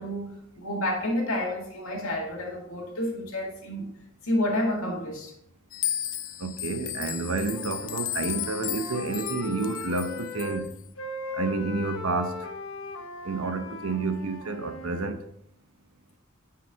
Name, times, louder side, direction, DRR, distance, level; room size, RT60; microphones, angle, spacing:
voice 1, 0.0-3.9 4.2-5.3, left 1 dB, 90° left, 2.0 m, -29 dB
sound 1, 5.7-10.7, left 12 dB, 40° left, 0.3 m, -34 dB
voice 2, 6.4-10.7 11.3-12.5 13.2-15.2, right 3 dB, 85° right, 0.8 m, -30 dB
Wind instrument woodwind instrument, 7.1-10.6 11.0-15.2, left 3 dB, 70° left, 0.9 m, -38 dB
9.4 x 4.8 x 3.5 m
head